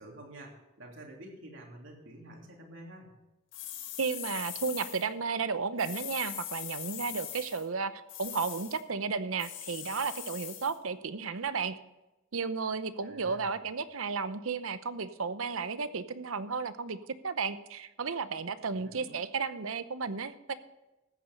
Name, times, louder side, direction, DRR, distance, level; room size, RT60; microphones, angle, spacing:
voice 1, 0.0-3.1 13.0-13.7 18.7-19.2, right 1 dB, 70° right, 0 dB, 3.2 m, -49 dB
sound 1, 3.5-5.1 5.8-7.6 8.1-8.8 9.4-10.8, left 11 dB, 70° left, 1.8 m, -41 dB
voice 2, 4.0-11.8 12.3-17.0 17.2-20.5, right 5 dB, 90° right, 13 dB, 0.8 m, -33 dB
14.0 x 8.9 x 5.4 m, 1.0 s
head